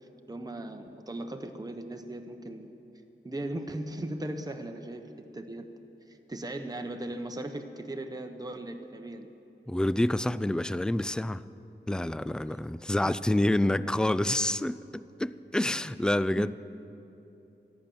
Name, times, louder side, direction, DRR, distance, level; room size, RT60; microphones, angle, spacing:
voice 1, 0.3-2.7 3.2-5.7 6.1-9.3 12.5-12.6 13.0-13.2 16.4-16.5, right 1 dB, 20° right, 0.9 m, -38 dB
voice 2, 9.7-11.4 11.9-16.5, left 1 dB, 5° left, 0.3 m, -28 dB
14.5 x 10.5 x 7.0 m
wide cardioid pair, 55°, 20 cm